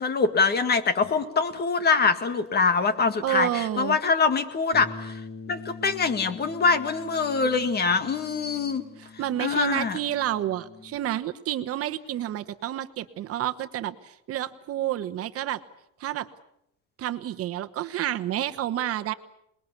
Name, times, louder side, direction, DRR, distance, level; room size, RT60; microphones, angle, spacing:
voice 1, 0.0-5.2 5.5-8.9 9.4-10.0, left 4 dB, 30° left, 11 dB, 1.9 m, -24 dB
voice 2, 3.2-4.0 9.0-15.6 16.0-16.3 17.0-19.1, right 12 dB, 50° right, 10 dB, 1.2 m, -29 dB
Bass guitar, 4.7-11.0, left 4 dB, 15° left, 5.1 m, -44 dB
27.5 x 21.0 x 8.3 m, 0.78 s
cardioid pair, 145°, 30 cm